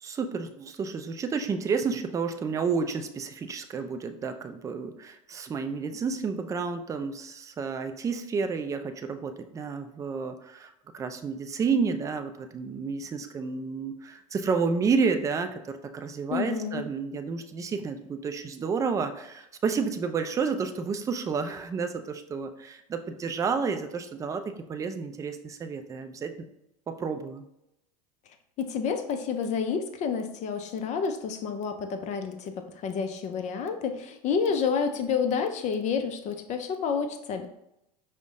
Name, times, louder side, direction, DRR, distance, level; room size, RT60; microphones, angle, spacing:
voice 1, 0.0-15.6 15.9-24.4 24.7-26.4 26.9-27.4, right 5 dB, 15° right, 7 dB, 0.4 m, -30 dB
voice 2, 16.3-16.8 28.6-37.5, left 6 dB, 35° left, 7 dB, 0.5 m, -29 dB
5.1 x 2.1 x 3.6 m, 0.84 s
hypercardioid pair, 90°, 20 cm